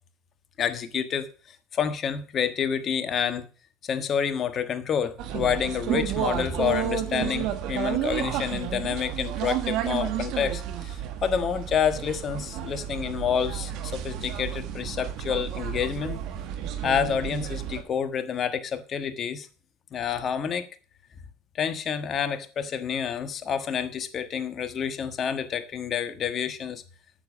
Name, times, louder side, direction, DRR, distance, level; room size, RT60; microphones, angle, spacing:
voice 1, 0.6-1.3 1.7-3.5 3.8-16.2 16.8-19.5 19.9-20.6 21.6-26.8, left 7 dB, 45° left, 1.4 m, -28 dB
sound 1, 5.2-17.8, right 10 dB, 60° right, 1.6 m, -31 dB
9.1 x 7.2 x 6.2 m
hypercardioid pair, 80°, 0 cm